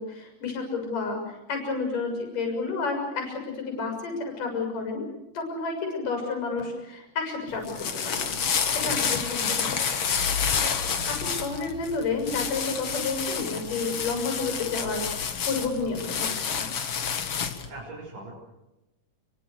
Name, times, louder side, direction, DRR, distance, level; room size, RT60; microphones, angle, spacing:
voice 1, 0.0-5.0 5.3-8.4 8.7-9.7 10.8-16.7, left 4 dB, 85° left, 3 dB, 8.5 m, -31 dB
sound 1, 7.5-17.7, left 6 dB, 50° left, 2.6 m, -29 dB
voice 2, 8.8-9.2 10.9-11.2 17.7-18.3, right 3 dB, 85° right, -3 dB, 8.3 m, -41 dB
29.5 x 24.0 x 6.7 m, 0.97 s
omnidirectional pair, 3.7 m